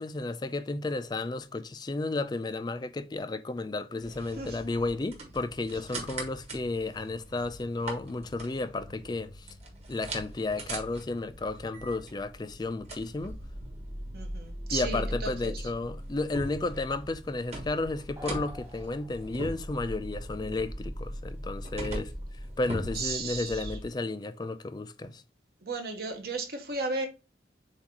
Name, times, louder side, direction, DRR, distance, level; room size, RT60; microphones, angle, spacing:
voice 1, 0.0-9.5 9.9-13.4 14.7-22.1 22.6-25.2, left 2 dB, 25° left, 0.4 m, -33 dB
sound 1, 4.0-23.9, right 1 dB, 35° right, 1.3 m, -40 dB
voice 2, 14.1-15.7 22.9-23.8 25.6-27.1, right 3 dB, 60° right, 1.0 m, -35 dB
sound 2, 18.2-19.7, left 1 dB, 20° right, 0.7 m, -48 dB
7.3 x 2.5 x 2.9 m
head